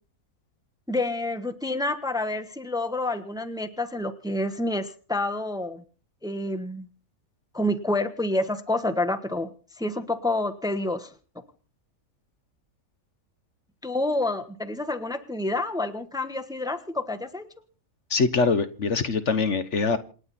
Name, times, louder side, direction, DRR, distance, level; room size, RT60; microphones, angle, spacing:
voice 1, 0.9-5.8 6.2-6.9 7.5-9.5 9.8-11.1 13.8-17.4, left 2 dB, 5° right, 9 dB, 1.2 m, -28 dB
voice 2, 18.1-20.0, left 4 dB, 60° left, 11 dB, 1.4 m, -23 dB
27.5 x 10.5 x 4.3 m, 0.39 s
omnidirectional pair, 1.5 m